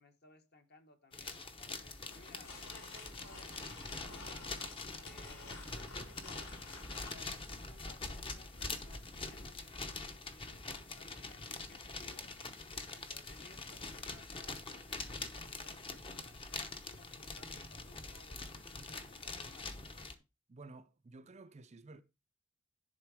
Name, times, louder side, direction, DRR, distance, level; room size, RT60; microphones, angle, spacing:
voice 1, 0.0-4.5 5.0-12.3 12.7-19.8, left 2 dB, 50° left, 1.4 m, -61 dB
sound 1, 1.1-20.1, left 3 dB, 25° left, 0.8 m, -44 dB
sound 2, 2.0-7.2, left 3 dB, 80° left, 3.0 m, -52 dB
voice 2, 20.5-22.0, right 3 dB, 30° right, 0.5 m, -53 dB
10.5 x 3.9 x 4.8 m
head